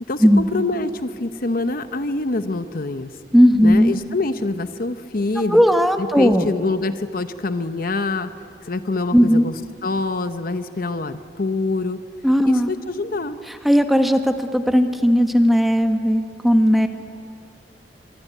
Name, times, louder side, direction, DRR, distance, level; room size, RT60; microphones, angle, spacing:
voice 1, 0.1-3.1 3.6-5.6 6.0-8.3 8.6-9.5 9.8-12.0 12.4-13.4, left 3 dB, 50° left, 10 dB, 0.9 m, -25 dB
voice 2, 3.3-3.9 5.4-6.5 9.1-9.4 12.2-12.7 13.6-16.9, equal, ahead, 6 dB, 1.4 m, -16 dB
24.5 x 24.0 x 9.2 m, 2.3 s
head